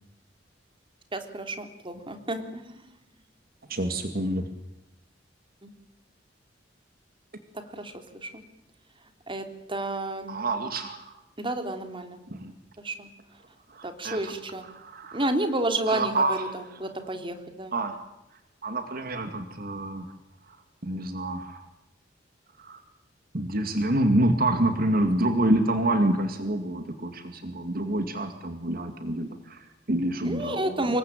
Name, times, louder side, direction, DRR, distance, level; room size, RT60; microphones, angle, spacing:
voice 1, 1.1-2.6 7.7-7.9 8.2-8.4 9.3-9.4 9.7-10.4 11.4-12.2 12.8-13.1 13.8-14.6 15.1-17.7 30.2-31.0, right 1 dB, 30° right, 7 dB, 3.1 m, -30 dB
voice 2, 3.7-4.5 10.3-11.1 12.3-12.5 13.7-14.3 14.6-15.2 15.9-16.4 16.7-16.8 17.7-18.0 18.6-20.1 20.8-21.7 22.6-22.8 23.3-31.0, right 1 dB, 50° right, 8 dB, 2.3 m, -27 dB
26.5 x 22.0 x 9.1 m, 0.85 s
head